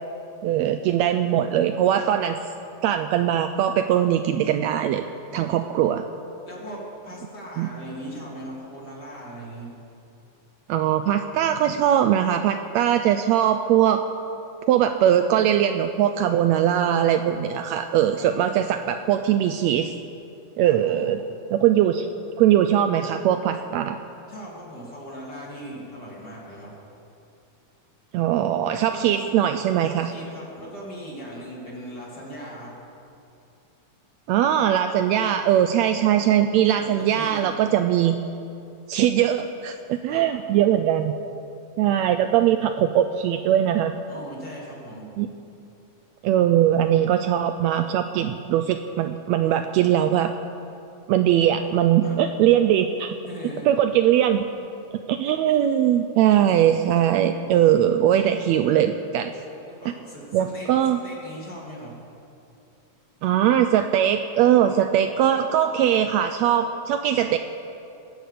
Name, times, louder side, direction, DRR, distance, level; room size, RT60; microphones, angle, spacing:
voice 1, 0.4-2.4 2.8-5.0 5.3-6.0 7.6-7.7 10.7-14.0 14.7-19.9 20.6-21.2 21.5-22.1 22.4-24.0 28.1-30.1 34.3-38.2 38.9-41.1 41.8-43.9 45.2-45.3 46.2-50.3 51.1-53.2 53.6-54.5 55.1-59.3 60.3-61.0 63.2-67.4, right 10 dB, 80° right, 8 dB, 1.7 m, -21 dB
voice 2, 6.5-9.7 18.2-18.4 20.6-21.1 24.3-26.7 28.8-29.3 29.8-32.7 36.7-37.5 40.1-40.3 44.0-45.1 52.0-52.3 53.2-53.7 59.6-62.0, equal, 35° left, -5 dB, 3.5 m, -39 dB
20.0 x 6.8 x 8.2 m, 2.7 s
omnidirectional pair, 3.4 m